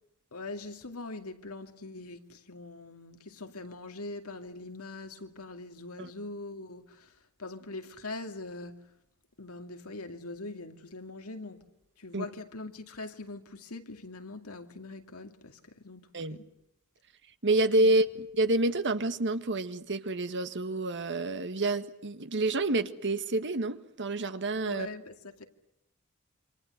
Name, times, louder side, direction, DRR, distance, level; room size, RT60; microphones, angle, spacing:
voice 1, 0.3-8.9 9.4-11.7 12.0-16.5 17.8-18.0 24.6-25.4, left 2 dB, 75° left, 2.5 m, -42 dB
voice 2, 17.4-24.9, right 2 dB, 55° right, 1.6 m, -28 dB
27.5 x 26.0 x 8.0 m
head